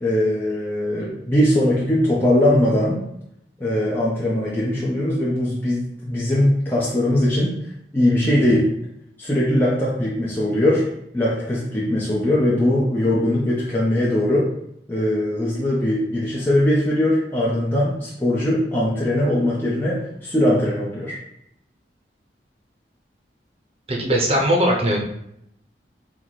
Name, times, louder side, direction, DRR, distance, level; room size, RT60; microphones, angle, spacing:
voice 1, 0.0-3.0 3.6-7.5 7.9-8.7 9.2-10.9 11.1-14.5 14.9-21.2, left 1 dB, 10° left, -7 dB, 0.6 m, -20 dB
voice 2, 23.9-25.0, equal, 35° right, 0 dB, 0.8 m, -19 dB
4.6 x 2.1 x 3.9 m, 0.77 s
head